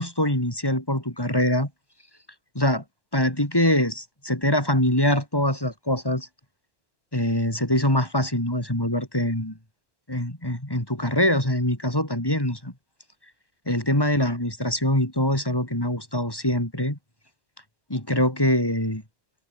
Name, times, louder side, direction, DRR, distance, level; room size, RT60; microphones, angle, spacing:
voice 1, 0.0-1.7 2.5-2.8 3.1-6.3 7.1-9.6 10.1-12.7 13.7-17.0 17.9-19.0, left 1 dB, 20° left, 4.5 m, -24 dB
omnidirectional pair, 1.2 m